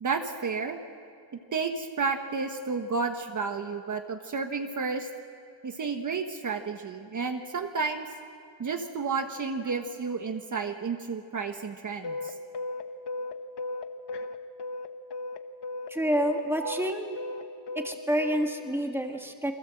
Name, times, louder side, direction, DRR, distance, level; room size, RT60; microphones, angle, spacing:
voice 1, 0.0-0.8 1.5-5.1 5.6-8.1 8.6-12.3 16.6-16.7, right 4 dB, 45° right, 5 dB, 1.3 m, -31 dB
sound 1, 12.0-15.4 15.6-18.5, left 2 dB, 65° left, 1.3 m, -35 dB
voice 2, 15.9-17.1 17.8-19.5, equal, 5° right, 3 dB, 2.0 m, -28 dB
28.5 x 24.0 x 7.8 m, 2.5 s
wide cardioid pair, 165°, 43 cm